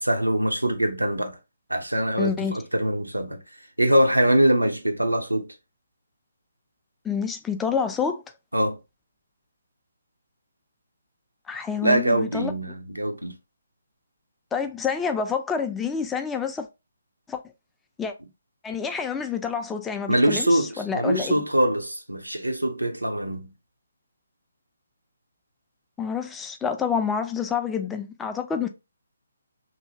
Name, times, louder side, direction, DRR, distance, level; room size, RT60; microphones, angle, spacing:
voice 1, 0.0-1.4 1.7-3.4 3.8-5.5 8.5-8.8 11.8-13.4 20.1-23.5, right 1 dB, 90° right, 0.6 m, -23 dB
voice 2, 2.2-2.5 7.0-8.2 11.5-12.5 14.5-16.7 17.3-17.4 18.0-18.1 18.6-21.4 26.0-28.7, left 6 dB, 10° left, 0.3 m, -28 dB
2.7 x 2.6 x 2.8 m
figure-of-eight pair, 140°, 0 cm